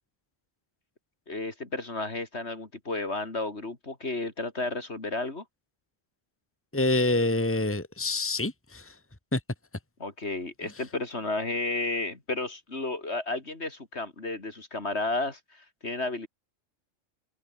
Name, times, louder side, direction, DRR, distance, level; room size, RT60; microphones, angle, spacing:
voice 1, 1.3-5.4 10.0-16.3, left 2 dB, 55° left, 3.6 m, -32 dB
voice 2, 6.7-8.9 9.3-9.4, left 2 dB, 10° left, 2.3 m, -26 dB
omnidirectional pair, 1.3 m